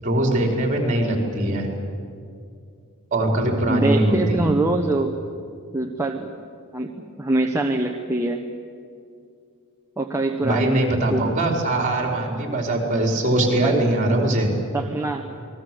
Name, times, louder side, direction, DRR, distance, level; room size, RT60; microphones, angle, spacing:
voice 1, 0.0-1.7 3.1-4.4 10.4-14.5, right 1 dB, 35° right, 1 dB, 4.7 m, -21 dB
voice 2, 3.7-5.1 5.7-6.3 6.7-6.9 7.2-8.4 10.0-11.3 13.6-13.8 14.7-15.3, right 2 dB, 15° right, 1 dB, 1.1 m, -24 dB
28.0 x 20.5 x 7.9 m, 2.4 s
head